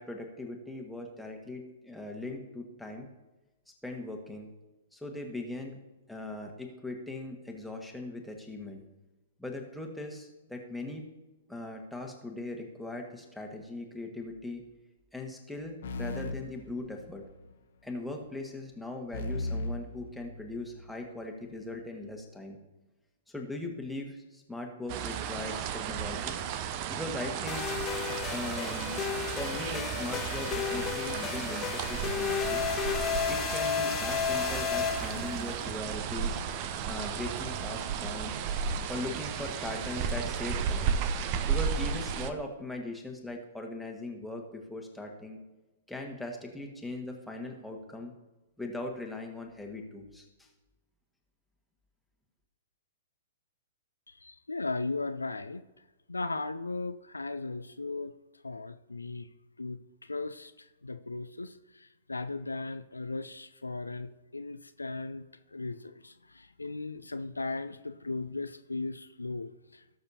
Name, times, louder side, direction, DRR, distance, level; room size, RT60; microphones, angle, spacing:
voice 1, 0.0-3.1 3.8-4.5 4.9-5.8 6.1-8.8 9.4-11.1 11.5-14.6 15.1-17.2 17.8-22.6 23.3-26.4 26.9-27.7 28.3-29.0 29.4-32.6 33.3-36.4 36.9-38.3 38.9-40.9 41.5-45.4 45.9-48.1 48.6-50.5, left 2 dB, ahead, 0 dB, 1.5 m, -39 dB
sound 1, 15.8-17.4 19.1-20.9, left 2 dB, 55° left, 1.0 m, -37 dB
sound 2, 24.9-42.3, right 7 dB, 35° right, 0.6 m, -34 dB
sound 3, 27.5-35.6, left 8 dB, 25° left, 0.6 m, -33 dB
voice 2, 54.1-55.6 56.1-58.1 58.4-59.3 59.6-65.3 65.5-70.0, left 3 dB, 80° left, 10 dB, 0.4 m, -37 dB
18.0 x 6.7 x 2.8 m, 1.1 s
figure-of-eight pair, 110°, 0 cm